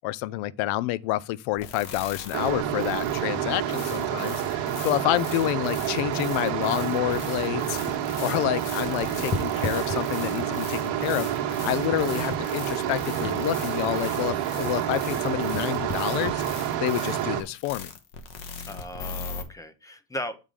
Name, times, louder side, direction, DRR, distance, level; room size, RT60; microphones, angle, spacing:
voice 1, 0.0-7.8 8.2-16.4 16.8-17.9, left 16 dB, 65° left, 0.6 m, -28 dB
sound 1, 1.6-19.4, left 6 dB, 90° left, 1.4 m, -41 dB
sound 2, 2.3-17.4, right 10 dB, 80° right, 1.3 m, -28 dB
sound 3, 5.5-8.2 8.5-10.6 11.2-14.7 15.0-17.8 18.4-18.6, left 4 dB, 25° left, 0.8 m, -39 dB
voice 2, 18.7-20.4, equal, 10° left, 0.4 m, -37 dB
7.3 x 3.7 x 4.8 m
cardioid pair, 135°, 49 cm